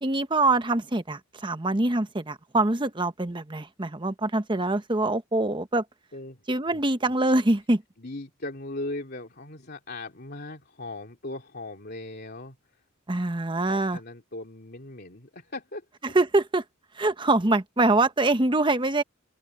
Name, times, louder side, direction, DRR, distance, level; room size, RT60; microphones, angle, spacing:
voice 1, 0.0-5.8 6.5-7.8 13.1-14.0 16.0-16.6 16.9-19.0, right 2 dB, 25° right, 1.0 m, -24 dB
voice 2, 6.1-6.4 6.7-7.1 8.0-12.8 13.7-15.8, left 2 dB, 50° left, 3.1 m, -39 dB
open air
head